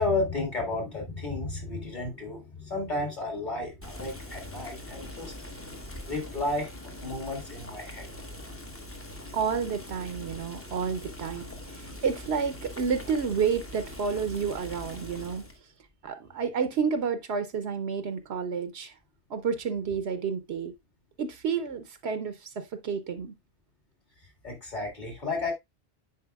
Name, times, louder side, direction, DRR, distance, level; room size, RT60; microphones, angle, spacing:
voice 1, 0.0-5.3 6.0-6.7 7.0-8.1 24.4-25.5, left 2 dB, 45° left, 2.3 m, -32 dB
Boiling, 3.8-15.6, left 1 dB, 15° left, 0.8 m, -42 dB
voice 2, 9.3-15.4 16.0-18.9 19.3-20.7 21.2-23.3, right 6 dB, 75° right, 1.0 m, -30 dB
9.6 x 4.4 x 2.3 m
omnidirectional pair, 1.1 m